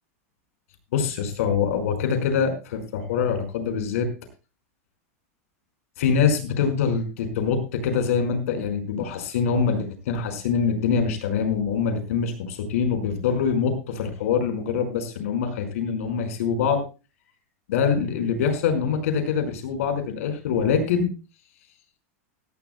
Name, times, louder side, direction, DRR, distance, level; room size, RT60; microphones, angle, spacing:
voice 1, 0.9-4.1 6.0-16.8 17.7-21.1, left 6 dB, 75° left, 7 dB, 5.2 m, -24 dB
16.0 x 16.0 x 2.3 m, 0.32 s
supercardioid pair, 145°, 8 cm